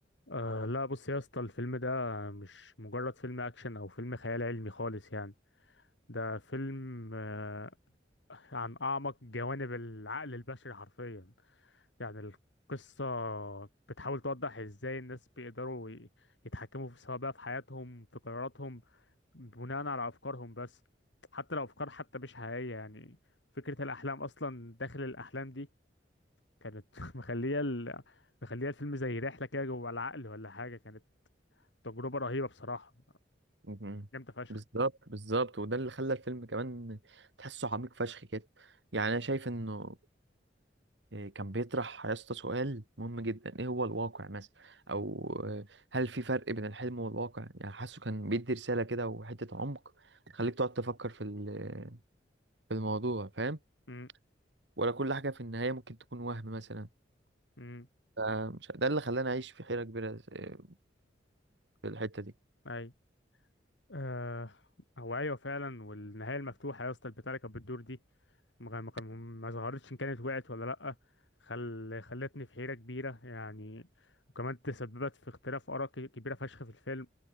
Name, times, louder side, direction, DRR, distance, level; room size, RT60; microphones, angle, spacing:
voice 1, 0.3-5.3 5.7-5.8 6.1-7.7 8.3-11.3 11.6-12.4 12.7-13.7 14.0-16.3 16.5-18.8 19.3-20.8 21.3-23.2 23.6-25.7 26.6-31.0 31.8-32.9 34.1-34.6 53.9-54.1 57.6-57.9 62.7-62.9 63.9-64.6 65.0-68.0 68.6-70.9 71.4-77.1, left 2 dB, 85° left, 4.0 m, -39 dB
voice 2, 33.6-34.1 34.5-40.0 41.1-49.8 50.3-52.0 52.7-53.6 54.8-56.9 58.2-60.7 61.8-62.3, right 2 dB, 75° right, 2.2 m, -35 dB
head